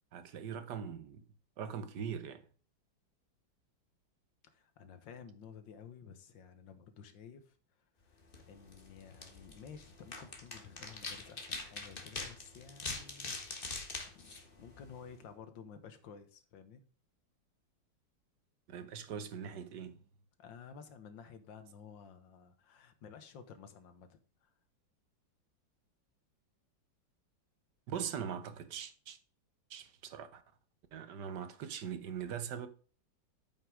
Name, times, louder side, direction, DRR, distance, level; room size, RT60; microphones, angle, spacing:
voice 1, 0.1-1.2 1.6-2.4 18.7-20.0 27.9-29.2 29.7-30.4 30.9-32.7, right 8 dB, 70° right, 1.5 m, -41 dB
voice 2, 4.4-13.9 14.1-16.8 20.4-24.5, left 6 dB, 85° left, 1.9 m, -53 dB
sound 1, 8.2-15.2, left 3 dB, 30° left, 1.5 m, -44 dB
8.8 x 5.6 x 4.8 m
omnidirectional pair, 2.0 m